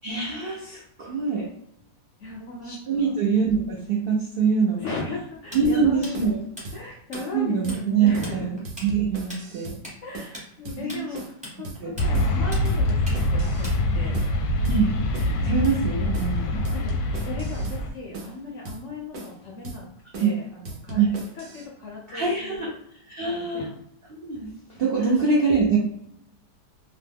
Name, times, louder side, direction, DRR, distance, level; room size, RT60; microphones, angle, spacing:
voice 1, 0.0-1.5 2.6-5.0 5.5-6.4 7.3-9.8 10.8-11.1 11.8-11.9 14.6-15.0 15.4-16.6 20.2-20.3 20.9-21.2 22.1-22.7 23.1-23.7 24.2-25.8, right 5 dB, 80° right, -4 dB, 0.5 m, -24 dB
voice 2, 2.2-3.1 4.8-6.2 6.7-8.5 10.0-13.7 13.9-14.1 16.7-17.0 17.2-19.9 20.2-21.0 21.3-22.7 23.2-23.7 25.0-25.2, left 3 dB, 70° left, -2 dB, 0.7 m, -37 dB
Tools, 5.5-7.2 7.5-7.8 8.1-14.1, equal, 5° right, 0.6 m, -40 dB
sound 1, 5.6-5.8 6.1-6.4 6.6-6.8 7.1-7.4 7.6-7.8 8.1-8.4 8.6-9.8 10.1-10.4 10.6-10.8 11.1-11.4 11.6-11.8 12.1-12.4 12.6-13.8 14.1-14.4 14.6-14.8 15.1-15.4 15.6-15.8 16.1-16.4 16.6-17.8 18.1-18.4 18.6-18.8 19.1-19.4 19.6-19.8 20.1-20.4 20.6-21.6, right 2 dB, 60° right, 1.0 m, -39 dB
sound 2, 12.0-17.9, left 1 dB, 85° left, 1.2 m, -24 dB
2.9 x 2.1 x 3.4 m, 0.72 s
omnidirectional pair, 1.8 m